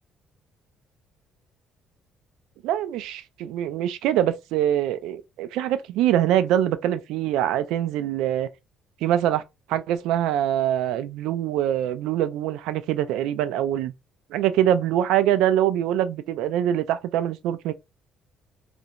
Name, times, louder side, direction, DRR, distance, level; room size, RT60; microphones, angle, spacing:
voice 1, 2.6-8.5 9.0-9.4 9.7-13.9 14.3-17.7, right 11 dB, 90° right, 0.3 m, -24 dB
2.5 x 2.1 x 2.8 m
cardioid pair, 130°, 0 cm